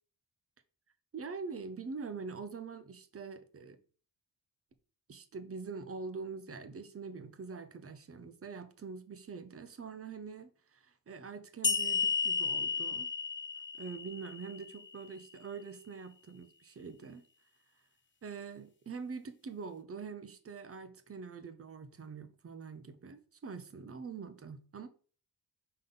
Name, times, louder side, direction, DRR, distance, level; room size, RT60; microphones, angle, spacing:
voice 1, 1.1-3.8 5.1-13.1 13.8-17.2 18.2-24.9, right 5 dB, 35° right, 0.8 m, -44 dB
sound 1, 11.6-15.0, left 5 dB, 30° left, 0.8 m, -33 dB
5.4 x 3.9 x 5.5 m
wide cardioid pair, 140°, 39 cm